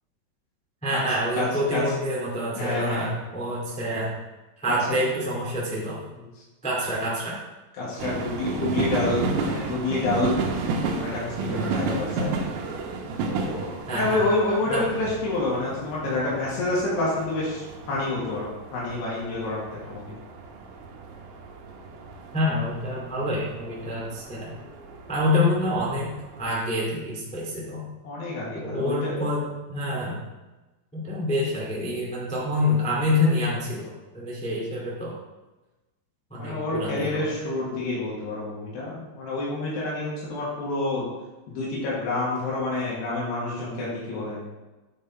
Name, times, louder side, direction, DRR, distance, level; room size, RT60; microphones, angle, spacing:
voice 1, 0.8-4.1 4.6-6.0 6.6-7.4 13.9-14.2 14.7-14.9 22.3-24.5 25.1-26.1 26.4-27.8 28.5-29.4 29.7-30.2 30.9-35.1 36.3-37.3, left 1 dB, 5° left, -6 dB, 0.5 m, -27 dB
voice 2, 2.6-3.1 7.8-12.5 13.3-20.1 28.0-29.1 36.4-41.1 41.5-44.5, left 2 dB, 85° left, -6 dB, 3.8 m, -28 dB
sound 1, 8.0-26.5, right 4 dB, 85° right, 3.0 m, -33 dB
8.5 x 5.5 x 4.3 m, 1.1 s
omnidirectional pair, 4.6 m